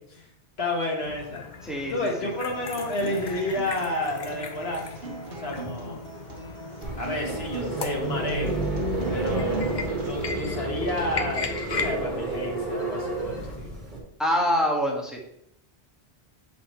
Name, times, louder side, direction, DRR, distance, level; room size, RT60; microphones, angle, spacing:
voice 1, 0.6-1.4 1.9-4.8 5.3-6.0 7.0-8.5 9.1-13.8, left 1 dB, 70° left, 0 dB, 1.8 m, -31 dB
sound 1, 1.0-13.6, left 5 dB, 50° left, 0.8 m, -38 dB
voice 2, 1.6-2.3 14.2-15.2, equal, ahead, -2 dB, 1.3 m, -25 dB
Acoustic guitar, 2.3-10.3, right 2 dB, 65° right, 1.5 m, -39 dB
sound 2, 6.8-14.0, right 2 dB, 45° right, 2.1 m, -30 dB
7.7 x 4.2 x 4.4 m, 0.74 s
omnidirectional pair, 1.1 m